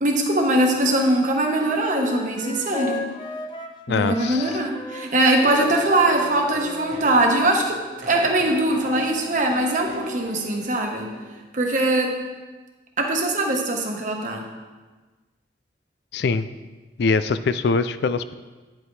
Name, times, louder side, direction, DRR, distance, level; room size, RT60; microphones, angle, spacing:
voice 1, 0.0-3.0 3.9-11.1 11.5-12.1 13.0-14.5, right 1 dB, 45° right, 1 dB, 1.2 m, -21 dB
Wind instrument woodwind instrument, 0.8-7.2, left 2 dB, 25° left, 0.6 m, -36 dB
voice 2, 3.9-4.6 16.1-16.5 17.0-18.3, left 4 dB, 65° left, 13 dB, 0.4 m, -23 dB
sound 1, 5.4-11.3, left 1 dB, 80° right, 2.6 m, -38 dB
10.0 x 7.6 x 3.3 m, 1.3 s
head